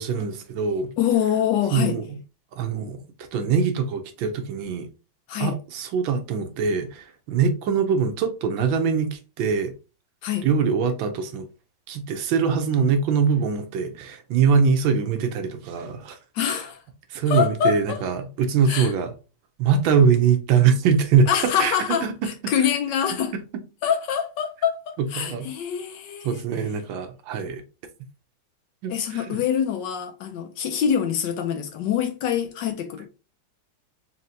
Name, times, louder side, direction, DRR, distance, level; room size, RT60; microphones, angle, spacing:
voice 1, 0.0-0.9 1.7-2.2 2.5-3.0 3.3-4.9 5.4-9.7 10.4-11.5 11.9-16.2 17.1-19.1 19.6-21.8 22.0-22.3 25.2-25.5 26.2-27.6 28.8-29.4, right 6 dB, 75° right, 1.4 m, -23 dB
voice 2, 1.0-2.0 5.3-5.6 10.2-10.5 16.3-16.8 17.3-18.0 18.7-18.9 21.3-23.3 23.8-26.3 28.9-33.1, left 8 dB, 70° left, 1.1 m, -25 dB
4.2 x 3.2 x 2.6 m
omnidirectional pair, 2.2 m